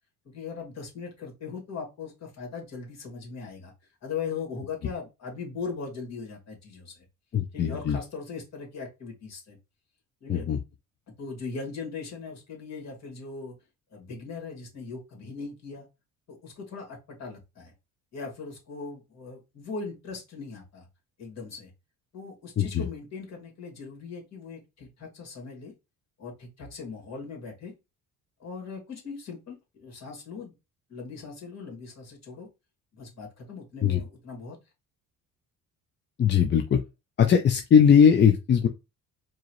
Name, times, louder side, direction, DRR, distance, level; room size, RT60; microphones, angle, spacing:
voice 1, 0.2-3.7 4.0-7.0 7.5-9.6 10.2-10.5 11.2-13.5 13.9-15.8 16.3-17.7 18.1-20.9 21.2-21.7 22.1-25.7 26.2-27.7 28.4-30.5 30.9-32.5 32.9-34.6, left 5 dB, 50° left, 0 dB, 2.4 m, -39 dB
voice 2, 7.3-8.0 10.3-10.6 22.6-22.8 33.8-34.0 36.2-36.8 37.2-38.7, left 7 dB, 30° left, 5 dB, 0.5 m, -20 dB
4.7 x 2.9 x 3.1 m, 0.25 s
cardioid pair, 115°, 34 cm